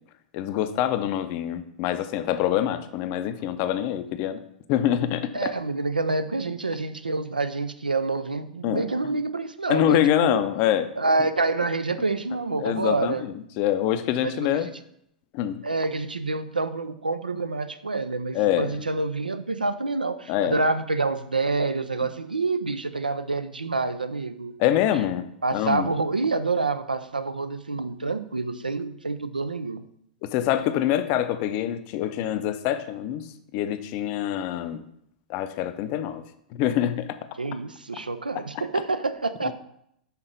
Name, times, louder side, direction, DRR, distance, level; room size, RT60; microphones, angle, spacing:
voice 1, 0.3-4.4 4.7-5.5 8.6-8.8 9.7-10.9 12.6-14.7 15.3-15.6 18.3-18.8 20.3-20.6 24.6-25.9 30.2-33.2 33.5-34.8 35.3-36.2 36.5-37.1, left 11 dB, 40° left, 11 dB, 0.5 m, -25 dB
voice 2, 5.3-10.4 11.0-13.3 14.2-14.7 15.6-24.6 25.4-29.8 37.4-39.5, right 3 dB, 85° right, 11 dB, 0.4 m, -27 dB
5.8 x 3.8 x 5.1 m, 0.73 s
figure-of-eight pair, 95°, 5 cm